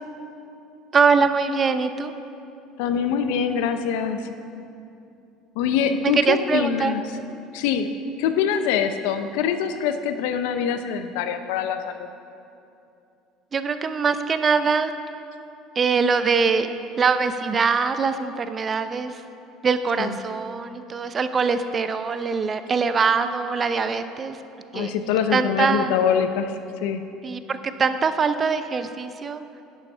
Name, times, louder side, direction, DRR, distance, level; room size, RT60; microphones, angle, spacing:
voice 1, 0.9-2.1 6.0-7.0 13.5-14.9 15.8-16.7 17.0-19.2 19.6-24.4 24.7-24.9 25.3-26.0 27.2-29.4, right 5 dB, 35° right, 10 dB, 0.6 m, -23 dB
voice 2, 2.8-4.3 5.6-7.0 7.5-7.9 8.2-12.1 20.0-20.1 24.7-26.5 26.8-27.0, left 7 dB, 75° left, 9 dB, 0.7 m, -24 dB
10.5 x 8.0 x 5.6 m, 2.7 s
supercardioid pair, 90°, 0 cm